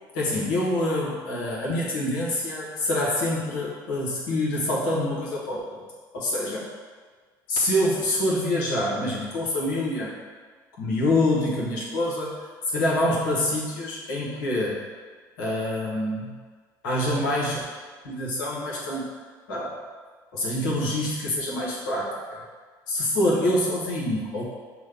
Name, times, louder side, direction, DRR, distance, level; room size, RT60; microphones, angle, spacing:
voice 1, 0.1-5.8 6.1-6.6 7.5-10.1 10.8-12.3 12.7-14.8 15.4-16.4 16.8-17.7 18.0-19.1 19.5-19.7 20.3-22.4 22.9-24.5, left 1 dB, 80° left, -5 dB, 1.2 m, -26 dB
6.1 x 2.4 x 3.4 m, 1.5 s
hypercardioid pair, 65°, 11 cm